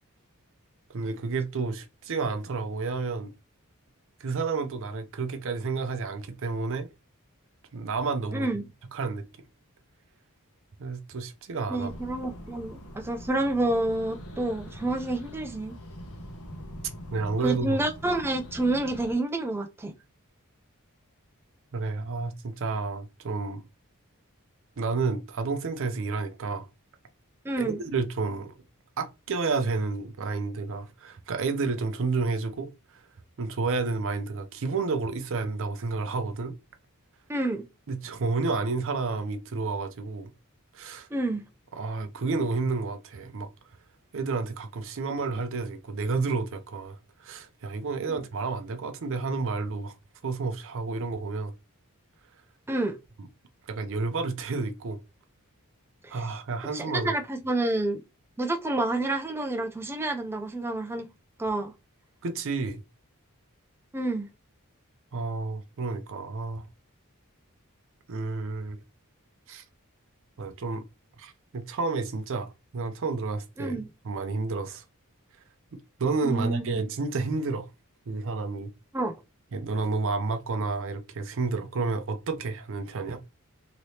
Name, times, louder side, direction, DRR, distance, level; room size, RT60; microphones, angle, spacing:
voice 1, 0.9-3.3 4.2-6.9 7.7-8.5 8.9-9.2 10.8-11.9 17.1-17.8 21.7-23.6 24.8-26.7 27.6-28.5 29.0-32.7 33.4-36.5 37.9-40.3 40.7-41.1 41.7-43.5 44.1-49.9 50.2-51.5 53.7-55.0 56.1-57.1 62.2-62.8 65.1-66.6 68.1-68.8 69.5-69.6 70.4-70.8 71.2-74.8 76.0-77.7 78.1-78.7 79.5-83.3, right 4 dB, 60° right, 0.5 m, -30 dB
voice 2, 8.3-8.6 11.7-15.8 17.4-19.9 27.4-27.8 37.3-37.7 41.1-41.4 48.1-48.2 52.7-53.0 56.0-56.3 56.7-58.0 58.4-61.1 61.4-61.7 63.9-64.3 73.6-73.9 76.2-76.8 78.9-79.2, right 2 dB, 10° right, 0.3 m, -29 dB
sound 1, 11.8-19.1, equal, 70° left, 0.9 m, -43 dB
3.2 x 2.9 x 2.7 m
head